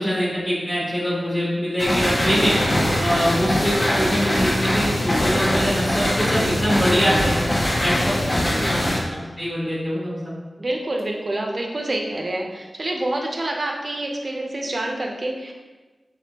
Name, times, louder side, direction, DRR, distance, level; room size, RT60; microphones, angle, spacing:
voice 1, 0.0-2.6 3.0-7.4 7.8-10.3, equal, 10° left, -8 dB, 1.1 m, -24 dB
sound 1, 1.8-9.0, left 1 dB, 30° left, 0.6 m, -22 dB
voice 2, 8.4-8.9 10.6-15.5, right 1 dB, 45° right, 1 dB, 0.5 m, -27 dB
3.5 x 3.4 x 2.8 m, 1.3 s
wide cardioid pair, 90°, 0 cm